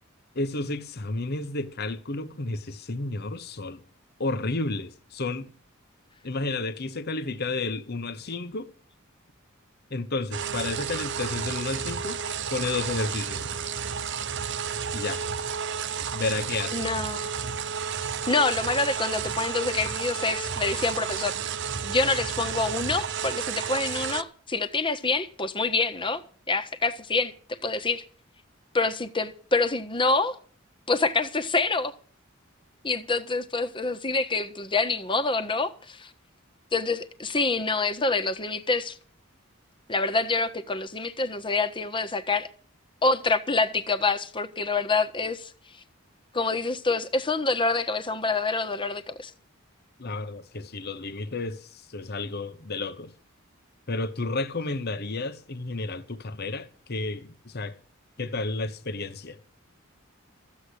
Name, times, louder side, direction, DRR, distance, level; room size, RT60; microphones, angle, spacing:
voice 1, 0.3-3.8 4.2-5.5 6.2-8.7 9.9-12.2 12.5-13.4 14.9-15.2 16.1-16.8 50.0-53.1 53.9-57.8 58.2-59.4, left 3 dB, 50° left, 1.0 m, -31 dB
sound 1, 10.3-24.2, right 7 dB, 60° right, 0.9 m, -31 dB
voice 2, 16.7-17.3 18.3-21.3 21.8-26.2 26.5-28.0 28.7-30.4 30.9-31.9 32.8-36.1 36.7-39.0 39.9-42.5 43.0-45.5 46.3-49.3, left 3 dB, 25° left, 1.3 m, -26 dB
14.5 x 8.5 x 8.0 m
head